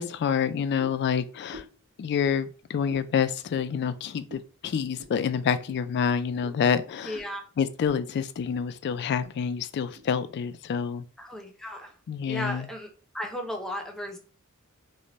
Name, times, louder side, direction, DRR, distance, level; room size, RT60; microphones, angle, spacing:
voice 1, 0.0-1.7 2.0-7.2 7.6-11.0 12.1-12.7, left 7 dB, 50° left, 0.3 m, -27 dB
sound 1, 0.8-1.1 1.5-1.8 2.2-2.4 2.9-3.1 3.5-3.7 4.3-4.5 5.0-5.2 5.7-5.8 6.4-6.6 7.1-7.3 7.8-8.0 8.3-8.7 9.2-9.3 9.9-10.1, equal, 60° right, 0.7 m, -46 dB
voice 2, 7.0-7.4 11.2-11.9 12.3-12.9 13.1-14.2, left 1 dB, ahead, 0.6 m, -35 dB
3.1 x 2.2 x 3.8 m
head